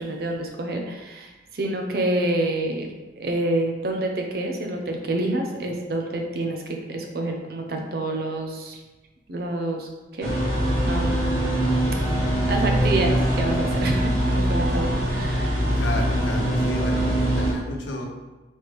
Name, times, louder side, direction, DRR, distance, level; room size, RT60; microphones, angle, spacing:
voice 1, 0.0-2.9 3.2-8.8 9.3-10.3 10.8-11.7 12.3-15.7, right 1 dB, 55° right, 2 dB, 0.6 m, -28 dB
sound 1, 10.2-17.5, right 1 dB, 75° right, 1.2 m, -23 dB
sound 2, 11.4-14.5, right 1 dB, 40° left, 1.3 m, -39 dB
voice 2, 15.7-18.1, left 1 dB, 90° left, 2 dB, 0.7 m, -32 dB
4.2 x 3.2 x 3.4 m, 1.1 s
head